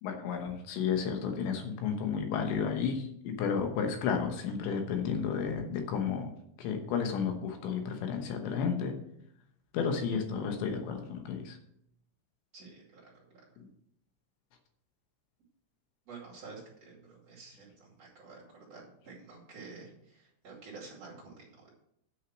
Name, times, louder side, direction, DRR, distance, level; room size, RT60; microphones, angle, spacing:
voice 1, 0.0-6.3 6.6-8.9 9.7-11.6 13.6-13.7, left 6 dB, 75° left, 4 dB, 3.2 m, -32 dB
voice 2, 12.5-13.4 16.1-21.7, right 4 dB, 40° right, -5 dB, 2.9 m, -50 dB
9.1 x 6.4 x 6.2 m, 0.74 s
omnidirectional pair, 5.4 m